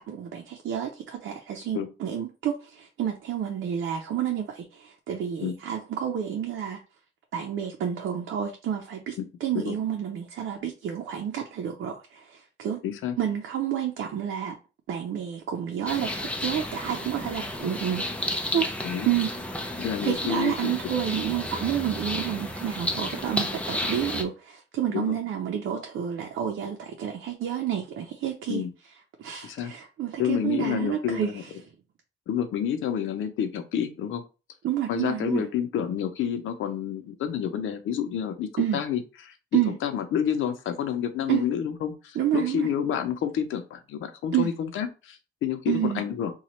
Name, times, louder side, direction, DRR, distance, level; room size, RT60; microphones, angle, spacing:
voice 1, 0.1-6.8 7.3-9.2 9.4-12.8 13.2-14.5 14.9-18.1 18.5-18.7 19.0-19.3 20.0-28.6 29.2-31.4 34.6-35.4 38.6-38.8 39.5-39.7 41.3-41.4 42.1-42.7 44.3-44.5 45.7-46.0, right 10 dB, 75° right, 0.7 m, -29 dB
voice 2, 12.8-13.2 18.8-19.1 19.8-20.8 24.9-25.2 28.5-28.7 29.4-29.7 30.2-31.4 32.3-34.2 34.9-46.3, left 8 dB, 85° left, 0.7 m, -29 dB
sound 1, 15.9-24.2, left 1 dB, 5° left, 0.7 m, -32 dB
3.0 x 2.4 x 4.3 m
cardioid pair, 95°, 20 cm